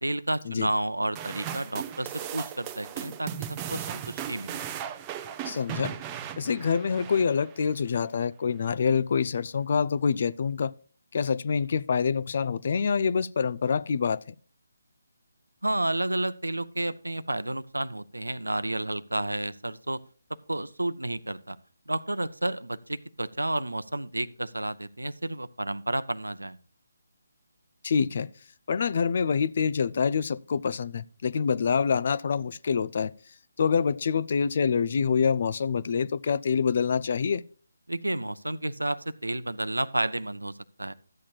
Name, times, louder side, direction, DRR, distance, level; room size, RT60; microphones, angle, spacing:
voice 1, 0.0-3.3 3.7-4.6 15.6-20.0 20.5-21.6 21.9-26.6 37.9-40.9, right 1 dB, 80° right, 0.7 m, -31 dB
sound 1, 1.1-7.7, right 9 dB, 20° right, 0.6 m, -37 dB
voice 2, 5.4-5.9 6.4-10.7 11.1-14.3 27.8-28.3 28.7-33.1 33.6-37.4, left 6 dB, 45° left, 0.4 m, -26 dB
13.0 x 8.6 x 2.4 m
figure-of-eight pair, 150°, 0 cm